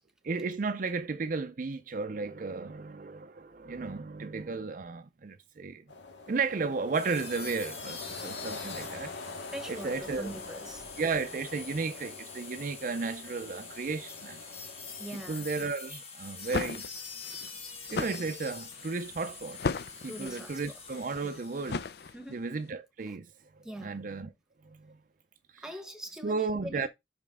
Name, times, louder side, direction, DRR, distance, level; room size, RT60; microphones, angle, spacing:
voice 1, 0.2-5.8 6.3-9.1 9.7-10.3 11.0-14.4 15.1-16.8 17.9-19.6 20.0-21.8 22.3-23.3 23.8-24.3 24.6-25.0 25.5-25.6 26.2-26.9, right 4 dB, 45° right, 0.4 m, -34 dB
sound 1, 5.9-15.5, left 3 dB, 80° left, 1.7 m, -45 dB
sound 2, 6.9-22.1, left 5 dB, 35° left, 1.7 m, -45 dB
voice 2, 9.5-10.8 15.0-15.5 20.1-20.6 21.2-21.4 22.1-22.5 23.1-23.2 23.6-24.0 25.6-26.9, right 1 dB, 5° right, 1.0 m, -43 dB
sound 3, 16.2-22.5, left 4 dB, 60° left, 0.5 m, -37 dB
5.7 x 5.2 x 3.6 m
head